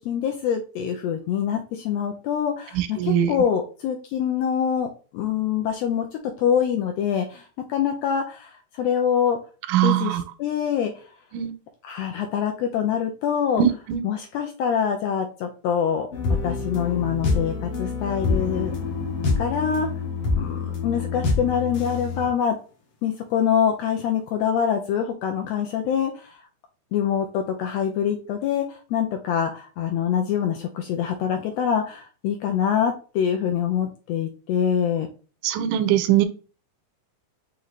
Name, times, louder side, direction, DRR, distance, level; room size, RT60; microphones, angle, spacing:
voice 1, 0.0-9.4 9.8-10.9 11.8-13.6 14.0-16.1 16.4-18.7 19.4-19.9 20.4-22.6 23.0-26.4 26.9-35.1, left 8 dB, 85° left, 4 dB, 1.5 m, -25 dB
voice 2, 2.8-3.3 9.7-10.2 11.3-11.5 13.6-14.0 35.4-36.3, right 11 dB, 90° right, 11 dB, 2.1 m, -21 dB
sound 1, 16.1-22.3, left 4 dB, 60° left, 1.6 m, -26 dB
5.9 x 2.7 x 3.1 m, 0.36 s
omnidirectional pair, 3.5 m